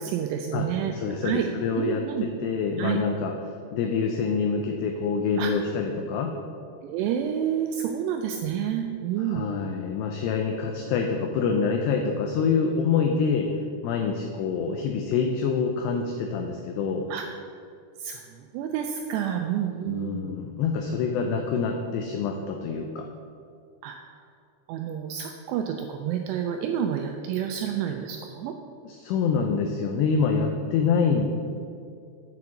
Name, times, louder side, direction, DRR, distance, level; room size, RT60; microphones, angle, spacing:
voice 1, 0.0-1.0 1.2-1.5 1.8-2.3 2.8-3.0 5.4-5.5 6.8-9.4 17.1-17.3 18.0-20.3 23.8-24.0 24.7-28.6, right 9 dB, 85° right, 4 dB, 2.4 m, -29 dB
voice 2, 0.5-3.3 3.7-6.3 9.2-13.5 13.8-17.1 19.9-23.1 28.8-31.3, left 5 dB, 80° left, 3 dB, 2.5 m, -26 dB
7.9 x 4.8 x 7.0 m, 2.3 s
omnidirectional pair, 5.3 m